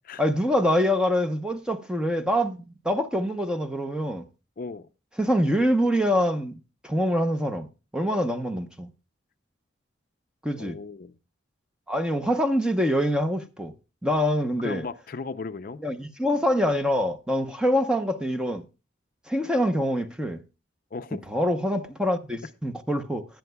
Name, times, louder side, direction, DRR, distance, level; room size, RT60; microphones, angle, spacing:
voice 1, 0.2-4.2 5.2-6.5 6.8-7.7 7.9-8.9 10.4-10.8 11.9-13.7 14.0-14.9 15.8-18.6 19.3-20.4 21.3-23.3, equal, 5° right, 0.7 m, -25 dB
voice 2, 4.6-4.9 10.5-11.1 14.6-15.8 20.9-21.2, left 4 dB, 45° left, 0.5 m, -36 dB
18.5 x 10.5 x 2.2 m
head